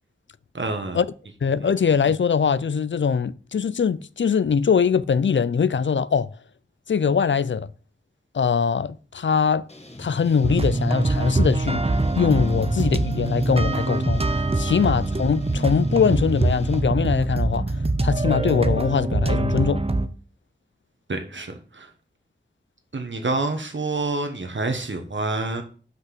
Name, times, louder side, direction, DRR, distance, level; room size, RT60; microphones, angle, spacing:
voice 1, 0.5-1.0 14.5-14.6 21.1-21.9 22.9-25.6, right 3 dB, 75° right, 1.3 m, -28 dB
voice 2, 1.4-6.3 6.9-7.7 8.3-9.7 10.0-14.2 14.6-17.7 18.0-19.8, left 6 dB, 75° left, 0.4 m, -22 dB
sound 1, 9.7-16.8, left 1 dB, 35° left, 1.6 m, -42 dB
sound 2, 10.4-20.1, right 2 dB, 30° right, 0.7 m, -23 dB
6.0 x 5.9 x 5.9 m
wide cardioid pair, 50°, 19 cm